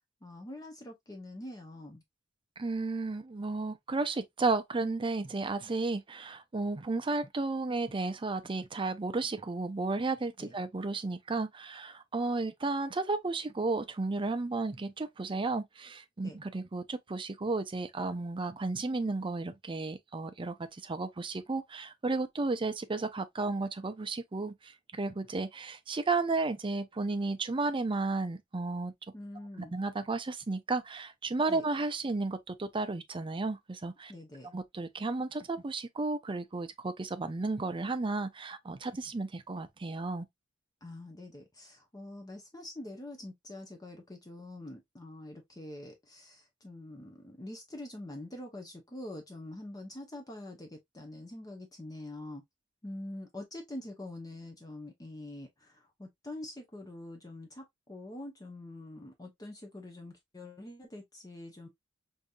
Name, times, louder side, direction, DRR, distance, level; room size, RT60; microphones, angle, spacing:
voice 1, 0.2-2.0 10.4-10.5 16.2-16.4 29.1-29.8 31.5-31.6 34.1-34.6 40.8-52.4 52.8-61.7, left 1 dB, 20° left, 0.7 m, -45 dB
voice 2, 2.6-20.6 20.8-28.9 29.6-34.1 34.5-40.3, right 3 dB, 25° right, 0.5 m, -33 dB
5.1 x 2.7 x 2.3 m
head